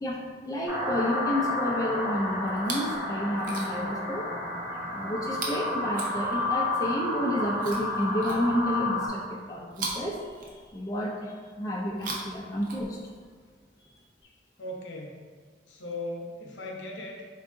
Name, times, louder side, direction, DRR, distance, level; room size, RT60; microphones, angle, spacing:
voice 1, 0.0-4.3 4.9-13.0, equal, 20° left, -2 dB, 0.4 m, -30 dB
sound 1, 0.7-9.1, left 2 dB, 20° right, 1.2 m, -31 dB
Chewing mastication, 2.5-3.0 3.3-4.0 5.3-6.7 7.6-8.8 9.7-11.0 11.8-13.3 14.2-14.3, right 3 dB, 50° right, 0.6 m, -39 dB
voice 2, 14.6-15.2 15.7-17.2, left 1 dB, 75° left, -1 dB, 0.7 m, -38 dB
4.5 x 2.5 x 3.6 m, 1.6 s
head